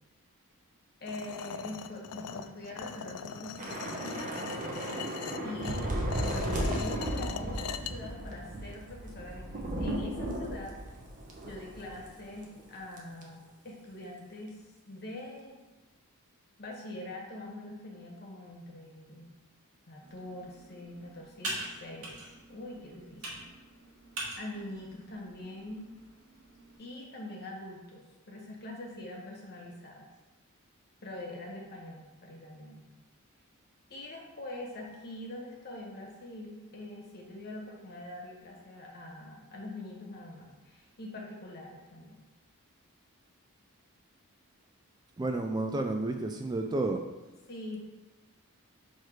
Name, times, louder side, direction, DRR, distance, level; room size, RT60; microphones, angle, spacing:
voice 1, 1.0-4.6 5.4-5.9 6.2-10.8 11.4-14.6 14.9-15.6 16.6-19.3 19.9-22.2 22.5-23.4 24.4-25.9 26.8-30.1 31.0-32.8 33.9-42.2 47.5-47.9, left 1 dB, 45° left, -1 dB, 1.3 m, -43 dB
sound 1, 1.1-7.9, left 7 dB, 90° left, 0.4 m, -41 dB
Thunder / Rain, 3.6-12.2 12.4-12.6 13.0-13.2, right 1 dB, 35° right, 0.9 m, -35 dB
Computer keyboard, 20.0-26.8, right 1 dB, 80° right, 1.8 m, -44 dB
voice 2, 45.2-47.0, right 2 dB, 20° right, 4 dB, 0.3 m, -31 dB
6.4 x 3.2 x 4.5 m, 1.2 s
head